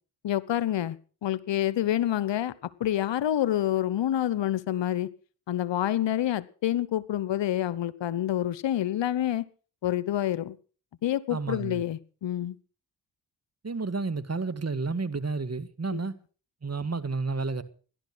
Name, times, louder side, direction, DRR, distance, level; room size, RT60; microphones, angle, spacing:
voice 1, 0.2-1.0 1.2-2.5 2.8-5.1 5.5-9.5 9.8-10.6 11.0-12.6 15.9-16.0, left 12 dB, 65° left, 1.0 m, -27 dB
voice 2, 11.3-11.8 13.6-16.2 16.6-17.6, right 4 dB, 30° right, 2.0 m, -31 dB
18.0 x 11.5 x 6.1 m
hypercardioid pair, 40°, 48 cm